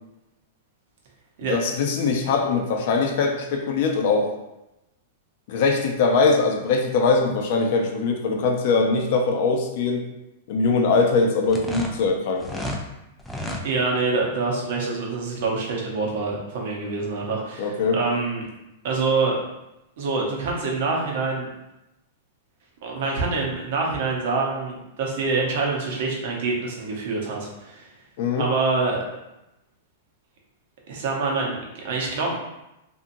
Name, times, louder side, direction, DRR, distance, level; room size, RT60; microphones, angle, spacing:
voice 1, 1.5-4.3 5.5-10.0 10.5-12.6 17.6-18.0 28.2-28.4, left 4 dB, 60° left, 2 dB, 0.5 m, -22 dB
sound 1, 11.5-12.8 13.2-13.6, left 1 dB, 5° left, 0.4 m, -31 dB
voice 2, 13.6-18.4 18.8-19.4 20.0-21.5 22.8-27.9 28.4-29.0 30.9-32.4, right 3 dB, 65° right, -1 dB, 0.8 m, -26 dB
2.7 x 2.4 x 2.6 m, 0.93 s
hypercardioid pair, 135°, 0 cm